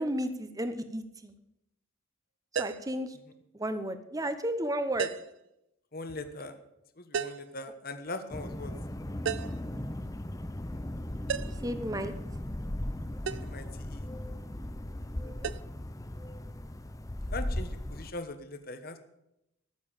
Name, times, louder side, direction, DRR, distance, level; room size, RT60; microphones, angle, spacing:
voice 1, 0.0-1.3 2.6-3.2 3.5-5.1 11.4-12.1 15.2-15.5, right 1 dB, 15° right, 10 dB, 0.9 m, -33 dB
sound 1, 2.6-2.9 5.0-5.4 7.1-7.5 9.3-9.7 11.3-11.7 13.3-13.5 15.4-15.6, right 6 dB, 60° right, 0.4 m, -34 dB
voice 2, 5.9-6.6 7.0-8.7 13.2-14.1 17.3-19.0, left 2 dB, 45° left, 9 dB, 1.2 m, -40 dB
sound 2, 8.3-18.1, left 1 dB, 15° left, 0.6 m, -37 dB
14.0 x 7.1 x 8.9 m, 0.86 s
head